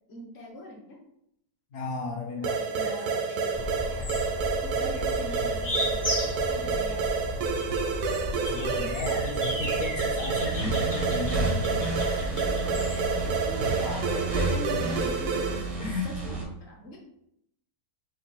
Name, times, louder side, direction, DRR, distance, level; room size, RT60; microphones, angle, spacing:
voice 1, 0.1-0.8 2.3-4.3 4.6-7.1 12.1-12.6 12.9-17.0, left 1 dB, 50° left, -2 dB, 1.2 m, -42 dB
voice 2, 1.7-3.3 8.4-11.9 15.8-16.2, left 3 dB, 65° left, -3 dB, 0.8 m, -35 dB
sound 1, 2.4-15.8, right 5 dB, 85° right, 1.1 m, -29 dB
sound 2, 3.5-13.5, left 1 dB, 20° left, 0.6 m, -34 dB
sound 3, 10.4-16.4, right 2 dB, 45° right, 0.4 m, -32 dB
4.5 x 2.4 x 3.0 m, 0.75 s
omnidirectional pair, 1.6 m